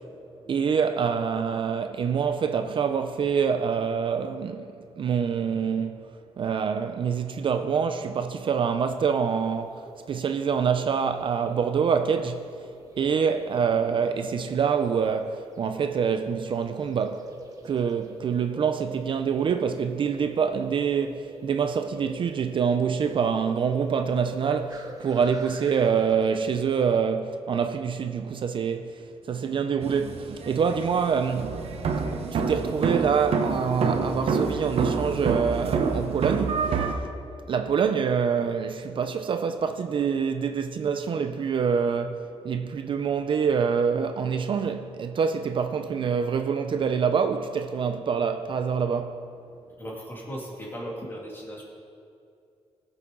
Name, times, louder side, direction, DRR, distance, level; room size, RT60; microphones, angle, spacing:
voice 1, 0.5-6.1 6.4-9.8 10.1-12.5 13.0-17.3 17.6-29.0 29.3-31.6 32.3-36.9 37.5-49.2, right 6 dB, 50° right, 0.4 m, -26 dB
sound 1, 9.2-27.0, right 2 dB, 30° right, 0.9 m, -45 dB
sound 2, 29.8-36.9, right 5 dB, 65° right, 0.9 m, -27 dB
voice 2, 49.8-51.6, equal, 20° left, 2.2 m, -37 dB
19.5 x 6.9 x 3.7 m
wide cardioid pair, 150°, 11 cm